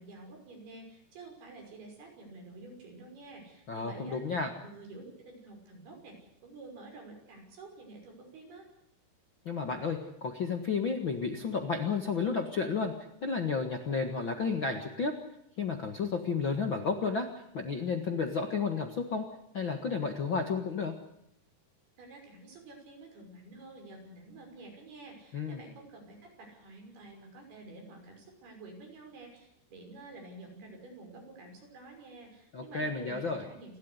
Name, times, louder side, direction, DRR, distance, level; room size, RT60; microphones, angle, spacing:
voice 1, 0.0-8.6 22.0-33.8, right 2 dB, 75° right, 2 dB, 7.9 m, -49 dB
voice 2, 3.7-4.5 9.4-12.9 13.2-15.1 15.6-17.3 17.5-19.2 19.5-20.9 25.3-25.6 32.5-33.4, left 5 dB, 50° left, 5 dB, 1.5 m, -32 dB
28.5 x 13.0 x 9.6 m, 0.79 s
omnidirectional pair, 4.6 m